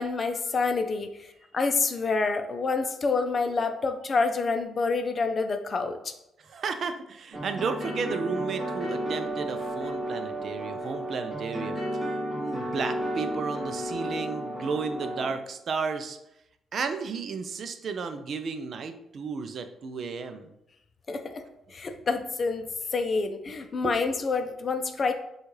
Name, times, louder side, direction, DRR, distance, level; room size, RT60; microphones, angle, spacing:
voice 1, 0.0-6.1 21.1-21.4 21.7-25.1, left 4 dB, 40° left, 7 dB, 0.5 m, -28 dB
voice 2, 6.4-11.8 12.4-16.2 16.7-20.5 23.5-23.6 23.8-23.9, right 5 dB, 55° right, 8 dB, 0.5 m, -33 dB
sound 1, 7.3-15.3, right 1 dB, 20° right, 1.7 m, -32 dB
6.2 x 2.4 x 3.2 m, 0.82 s
cardioid pair, 100°, 0 cm